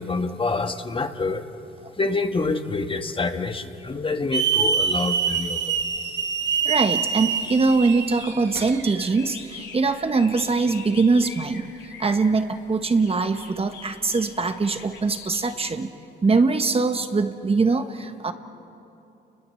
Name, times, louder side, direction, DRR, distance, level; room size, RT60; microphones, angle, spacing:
voice 1, 0.0-1.5 2.0-5.7, left 3 dB, 25° left, 7 dB, 1.4 m, -27 dB
Hiss / Alarm, 4.3-9.1, right 6 dB, 65° right, 1.9 m, -25 dB
voice 2, 6.6-11.7 12.0-15.9 16.2-18.3, right 4 dB, 30° right, 8 dB, 1.4 m, -22 dB
sound 1, 7.2-15.5, left 5 dB, 70° left, 5.9 m, -44 dB
29.5 x 21.5 x 7.9 m, 2.8 s
cardioid pair, 90°, 20 cm